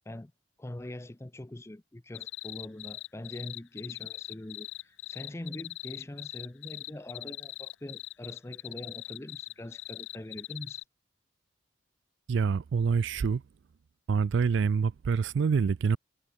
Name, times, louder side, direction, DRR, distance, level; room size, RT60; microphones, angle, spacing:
voice 1, 0.6-10.8, left 1 dB, 15° left, 0.5 m, -43 dB
sound 1, 2.1-10.8, left 18 dB, 65° left, 0.6 m, -41 dB
voice 2, 12.3-13.4 14.1-16.0, right 5 dB, 60° right, 0.3 m, -26 dB
head